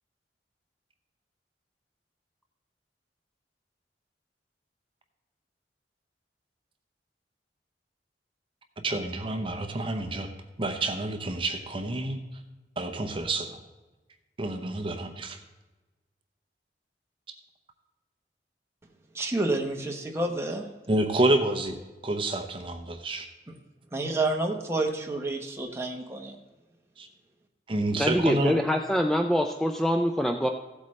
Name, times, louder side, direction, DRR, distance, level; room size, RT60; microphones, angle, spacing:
voice 1, 8.8-10.3 10.6-12.2 12.8-13.6 14.4-15.4 20.9-21.8 22.0-23.3 27.0-27.1 27.7-28.6, right 2 dB, 30° right, 5 dB, 0.7 m, -28 dB
voice 2, 19.1-20.7 23.9-26.4, right 2 dB, 15° right, 1 dB, 1.1 m, -29 dB
voice 3, 28.0-30.5, equal, 5° left, 3 dB, 0.4 m, -24 dB
15.5 x 8.1 x 3.2 m, 1.2 s
head